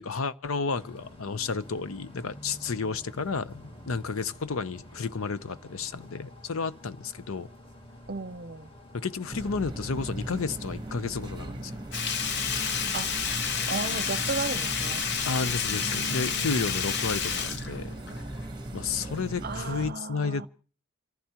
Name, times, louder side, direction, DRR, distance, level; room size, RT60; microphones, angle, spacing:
voice 1, 0.0-7.5 8.9-11.7 15.2-17.9 18.7-20.5, left 4 dB, 80° left, 0.7 m, -32 dB
sound 1, 0.7-19.5, left 1 dB, 25° left, 1.7 m, -50 dB
voice 2, 8.1-8.7 12.9-13.1 13.7-15.0 15.7-16.5 19.4-20.5, right 3 dB, 45° right, 0.7 m, -35 dB
sound 2, 9.3-19.9, right 1 dB, 20° right, 1.1 m, -38 dB
Sink (filling or washing), 11.9-18.4 18.8-18.9, left 6 dB, 55° left, 0.9 m, -30 dB
29.0 x 15.0 x 3.0 m
head